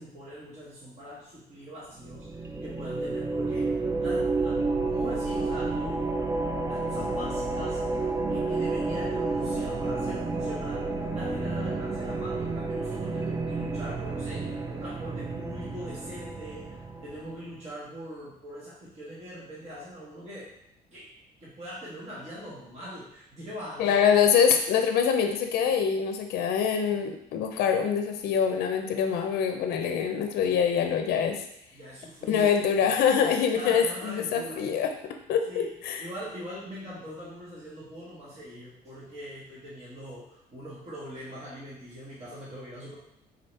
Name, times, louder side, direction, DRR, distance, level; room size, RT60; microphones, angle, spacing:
voice 1, 0.0-6.0 6.7-20.5 20.9-21.1 21.4-24.0 31.7-32.5 33.5-34.7 35.5-35.7 36.0-42.9, equal, 40° right, -8 dB, 1.4 m, -42 dB
sound 1, 2.0-17.4, right 3 dB, 20° right, 0.4 m, -30 dB
voice 2, 23.8-31.4 32.3-34.9 35.3-36.0, left 7 dB, 70° left, 5 dB, 0.5 m, -24 dB
3.9 x 2.8 x 3.2 m, 0.79 s
cardioid pair, 110°, 17 cm